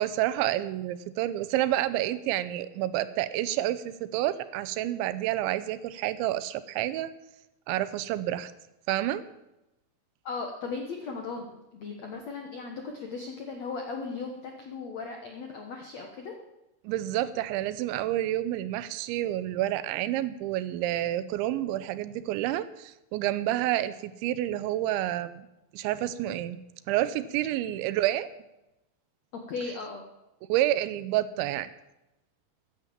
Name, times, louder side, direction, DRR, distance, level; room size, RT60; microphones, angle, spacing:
voice 1, 0.0-7.1 7.7-8.5 8.9-9.2 16.8-25.4 25.7-26.6 26.9-28.3 30.5-31.7, right 13 dB, 85° right, 14 dB, 3.1 m, -29 dB
voice 2, 10.2-11.4 11.7-16.3 29.3-30.0, left 4 dB, 75° left, 3 dB, 1.6 m, -37 dB
15.0 x 10.0 x 7.4 m, 0.92 s
omnidirectional pair, 5.3 m